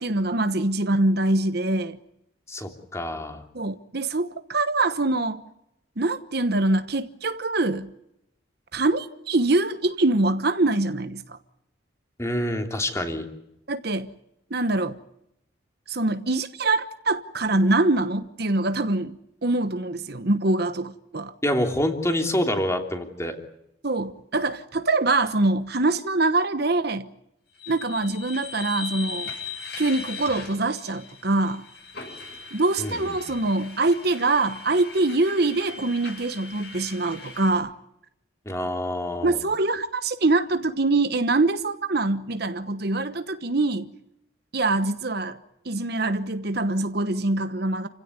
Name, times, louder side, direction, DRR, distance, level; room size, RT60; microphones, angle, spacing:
voice 1, 0.0-2.0 3.5-5.4 6.0-7.9 8.7-11.4 13.7-14.1 14.5-15.0 15.9-19.1 19.4-21.3 23.8-27.1 27.7-29.3 29.8-31.6 32.5-37.7 39.2-43.9 44.5-45.4 45.6-47.9, right 2 dB, 50° right, 1.1 m, -24 dB
voice 2, 2.5-3.4 12.2-13.2 21.4-23.4 32.8-33.0 38.4-39.4, left 1 dB, 15° left, 3.1 m, -26 dB
sound 1, 27.5-37.5, left 4 dB, 55° left, 7.9 m, -39 dB
29.5 x 16.5 x 9.7 m
head